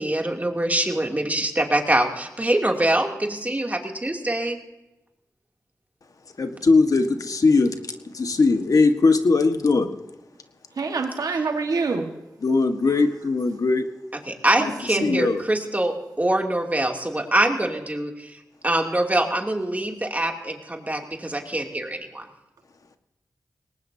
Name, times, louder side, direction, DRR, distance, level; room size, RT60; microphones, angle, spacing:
voice 1, 0.0-4.6 14.3-18.3 18.6-22.3, right 1 dB, 25° right, 2 dB, 2.8 m, -24 dB
voice 2, 6.4-7.8 8.0-9.9 12.4-13.9 15.0-15.4, left 3 dB, 65° left, 7 dB, 1.5 m, -20 dB
voice 3, 10.8-12.1 14.6-14.7 15.0-15.3, right 4 dB, 80° right, 4 dB, 1.6 m, -26 dB
21.0 x 18.5 x 2.8 m, 1.0 s
cardioid pair, 40°, 6 cm